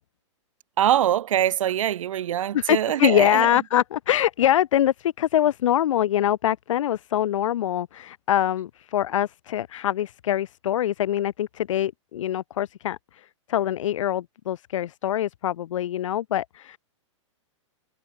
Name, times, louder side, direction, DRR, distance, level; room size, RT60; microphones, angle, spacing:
voice 1, 0.8-3.6, right 11 dB, 85° right, 0.5 m, -23 dB
voice 2, 2.5-16.8, left 11 dB, 80° left, 0.5 m, -24 dB
hypercardioid pair, 165°, 16 cm